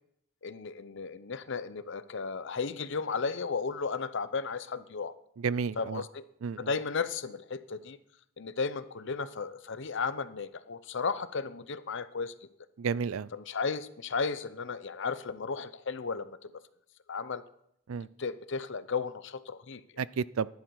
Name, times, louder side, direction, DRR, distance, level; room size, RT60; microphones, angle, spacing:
voice 1, 0.4-5.1 5.8-6.2 6.6-8.0 8.4-12.3 13.3-16.5 17.1-17.4 18.2-19.8, left 5 dB, 65° left, 13 dB, 0.8 m, -34 dB
voice 2, 5.4-6.0 6.4-6.7 12.8-13.3 17.9-18.1 20.0-20.5, right 6 dB, 85° right, 19 dB, 0.4 m, -31 dB
15.5 x 11.0 x 4.7 m, 0.75 s
head